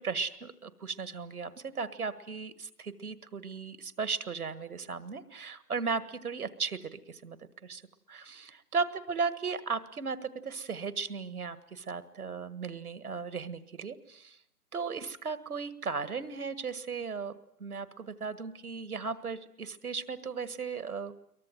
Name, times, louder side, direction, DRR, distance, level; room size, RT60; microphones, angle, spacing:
voice 1, 0.0-7.4 7.6-7.8 8.1-14.4 14.7-21.1, right 5 dB, 75° right, 15 dB, 1.8 m, -36 dB
23.0 x 19.5 x 9.4 m, 0.72 s
hypercardioid pair, 180°, 45 cm